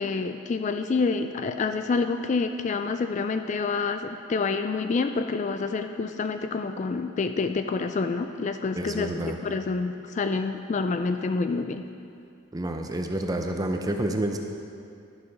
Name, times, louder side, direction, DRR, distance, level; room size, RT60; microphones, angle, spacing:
voice 1, 0.0-11.8, left 4 dB, 35° left, 8 dB, 0.3 m, -28 dB
voice 2, 8.7-9.4 12.5-14.4, right 1 dB, 15° right, 4 dB, 0.6 m, -29 dB
11.5 x 6.8 x 5.2 m, 2.5 s
head